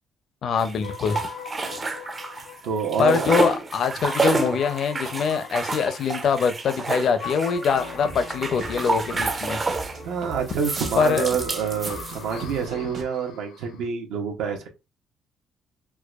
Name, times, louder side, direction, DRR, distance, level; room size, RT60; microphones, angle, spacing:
voice 1, 0.4-1.2 3.0-9.6 11.0-11.3, left 6 dB, 45° left, 0.4 m, -23 dB
sound 1, 0.6-2.5 2.8-10.0 10.5-12.5, right 3 dB, 20° right, 0.4 m, -29 dB
sound 2, 0.8-13.9, left 7 dB, 90° left, 0.7 m, -42 dB
voice 2, 2.6-3.3 10.0-14.7, right 6 dB, 80° right, 0.8 m, -27 dB
sound 3, 7.6-13.0, right 2 dB, 55° right, 1.1 m, -40 dB
4.6 x 2.2 x 2.3 m
cardioid pair, 155°, 0 cm